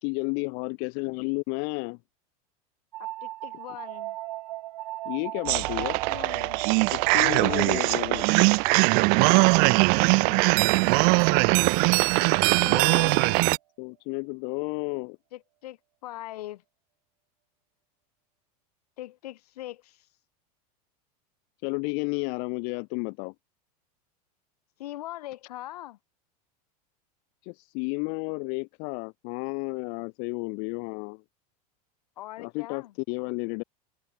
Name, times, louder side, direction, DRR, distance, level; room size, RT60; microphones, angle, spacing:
voice 1, 0.0-2.0 5.0-6.0 6.9-8.2 12.6-13.2 13.8-15.2 21.6-23.3 27.4-31.2 32.4-33.6, left 40 dB or more, 55° left, 1.0 m, -32 dB
sound 1, 2.9-12.3, right 16 dB, 85° right, 1.4 m, -38 dB
voice 2, 3.0-4.2 5.5-6.6 7.4-8.3 9.4-10.6 11.9-13.4 15.3-16.6 19.0-20.1 24.8-26.0 32.2-32.9, left 15 dB, 85° left, 3.2 m, -42 dB
sound 2, 5.5-13.6, right 37 dB, 50° right, 0.5 m, -21 dB
supercardioid pair, 130°, 19 cm